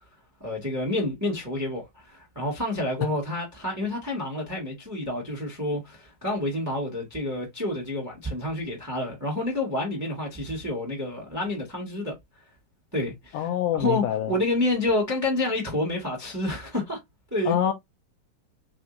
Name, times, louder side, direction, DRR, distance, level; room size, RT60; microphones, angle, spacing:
voice 1, 0.4-12.1 12.9-13.5 13.7-17.0 17.3-17.6, left 1 dB, 10° right, 0.9 m, -29 dB
voice 2, 13.3-14.3 17.5-17.7, left 10 dB, 80° left, 1.9 m, -25 dB
5.4 x 2.8 x 2.4 m
omnidirectional pair, 4.0 m